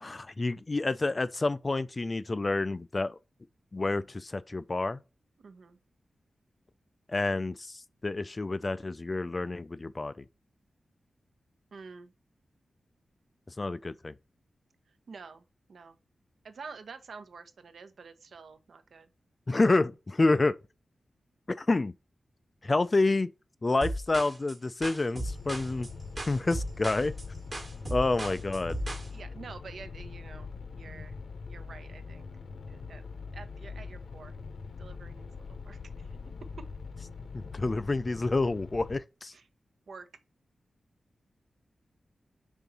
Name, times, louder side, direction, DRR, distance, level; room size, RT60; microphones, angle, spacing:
voice 1, 0.0-3.2 3.7-5.0 7.1-10.2 13.6-14.1 19.5-20.6 21.5-21.9 22.6-23.3 23.6-25.9 26.3-27.1 27.9-28.7 37.3-39.3, left 2 dB, 25° left, 0.3 m, -28 dB
voice 2, 5.4-5.8 11.7-12.1 15.1-15.4 15.7-16.0 16.4-19.1 28.2-28.4 29.1-31.2 31.5-32.3 32.7-33.0 33.3-34.3 34.8-36.2 39.3-39.5 39.9-40.1, right 5 dB, 65° right, 0.9 m, -48 dB
sound 1, 23.8-29.1, right 1 dB, 25° right, 1.3 m, -36 dB
sound 2, 25.2-38.9, left 4 dB, 60° left, 0.8 m, -43 dB
5.3 x 3.9 x 5.9 m
wide cardioid pair, 175°, 0 cm